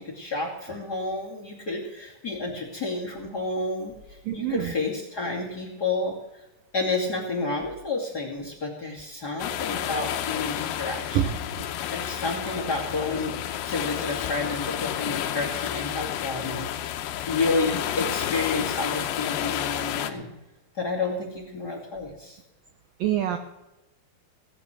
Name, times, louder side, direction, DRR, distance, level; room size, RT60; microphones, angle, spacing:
voice 1, 0.0-6.4 6.7-11.3 11.9-17.0 17.3-20.3 20.8-22.4, left 3 dB, 30° left, 0 dB, 2.2 m, -30 dB
voice 2, 4.3-4.7 11.1-11.7 23.0-23.4, right 11 dB, 75° right, 7 dB, 2.1 m, -26 dB
sound 1, 9.4-20.1, left 11 dB, 80° left, 3.0 m, -31 dB
17.5 x 10.0 x 6.2 m, 0.99 s
omnidirectional pair, 5.0 m